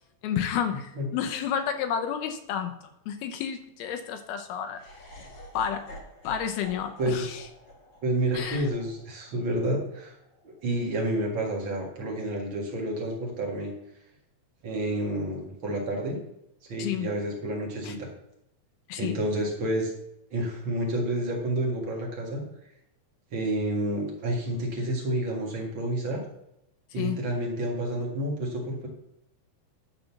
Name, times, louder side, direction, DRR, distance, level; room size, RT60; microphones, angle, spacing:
voice 1, 0.2-2.7 3.1-4.8 5.5-6.0 6.2-7.4 8.3-8.7 16.8-17.1 17.8-17.9 18.9-19.2 27.0-27.2, left 8 dB, 75° left, 7 dB, 2.5 m, -31 dB
Laughter, 4.7-10.9, equal, 50° left, 1.4 m, -48 dB
voice 2, 8.0-10.1 10.4-13.7 14.6-16.2 16.6-18.1 19.0-19.9 20.3-22.4 23.3-26.2 26.9-28.9, right 1 dB, 45° right, 0 dB, 1.6 m, -29 dB
11.0 x 4.2 x 7.0 m, 0.82 s
omnidirectional pair, 4.8 m